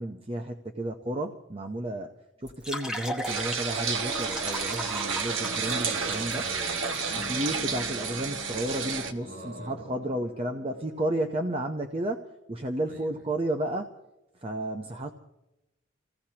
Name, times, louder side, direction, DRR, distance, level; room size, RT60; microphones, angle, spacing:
voice 1, 0.0-2.1 2.4-6.4 7.1-13.9 14.3-15.1, right 1 dB, 30° right, 4 dB, 0.7 m, -32 dB
sound 1, 2.4-7.4, equal, 5° right, 1.0 m, -38 dB
sound 2, 3.3-9.1, right 5 dB, 75° right, 1.4 m, -31 dB
sound 3, 3.9-11.1, equal, 70° left, 1.3 m, -45 dB
voice 2, 6.3-7.6 9.2-9.8 12.9-13.3, equal, 50° right, 1 dB, 3.8 m, -45 dB
27.0 x 16.5 x 2.9 m, 0.93 s
head